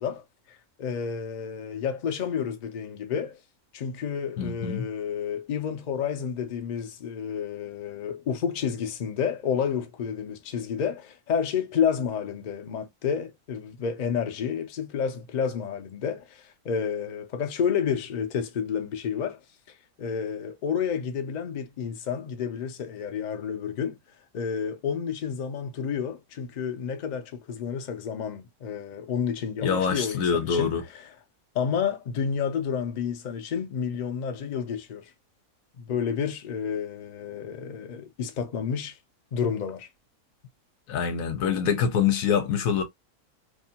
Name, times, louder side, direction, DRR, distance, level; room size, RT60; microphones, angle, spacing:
voice 1, 0.0-3.4 3.7-19.4 19.7-24.0 24.3-31.2 31.5-35.1 35.8-39.0 39.3-39.9, left 7 dB, 90° left, 0.4 m, -30 dB
voice 2, 4.4-4.8 29.6-30.8 40.9-42.8, left 7 dB, 70° left, 1.0 m, -25 dB
2.6 x 2.1 x 2.7 m
omnidirectional pair, 1.6 m